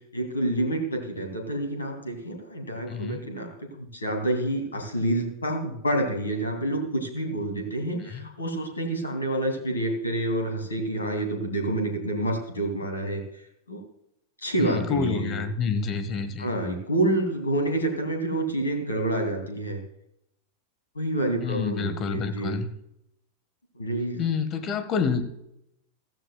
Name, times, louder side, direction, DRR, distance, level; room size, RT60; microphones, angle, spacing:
voice 1, 0.1-13.2 13.7-13.8 14.4-15.4 16.4-19.8 20.9-22.6 23.7-24.3, right 1 dB, 75° left, 3 dB, 2.7 m, -28 dB
voice 2, 2.9-3.2 8.1-8.3 14.6-16.5 21.4-22.7 24.2-25.2, left 5 dB, 30° left, 10 dB, 1.5 m, -28 dB
15.0 x 15.0 x 2.3 m, 0.79 s
figure-of-eight pair, 90°, 0 cm